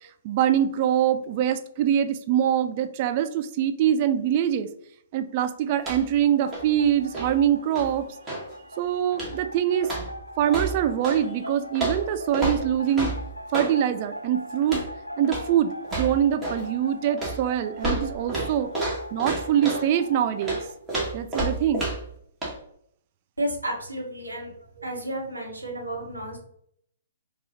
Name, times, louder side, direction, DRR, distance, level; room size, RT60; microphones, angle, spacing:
voice 1, 0.2-4.7 5.1-8.0 8.8-9.9 10.4-13.1 13.5-14.8 15.2-18.7 19.1-20.6 21.1-21.9, right 10 dB, 35° right, 9 dB, 0.3 m, -24 dB
sound 1, 5.8-6.2 6.4-8.5 9.1-9.5 9.8-11.2 11.7-13.8 14.6-14.9 15.2-15.5 15.8-16.7 17.2-19.9 20.4-22.1 22.4-22.6, right 2 dB, 5° right, 1.4 m, -31 dB
sound 2, 6.1-20.7, left 1 dB, 90° left, 0.3 m, -40 dB
voice 2, 23.4-26.4, right 1 dB, 80° right, -1 dB, 1.2 m, -32 dB
4.7 x 2.4 x 2.8 m, 0.68 s
figure-of-eight pair, 120°, 0 cm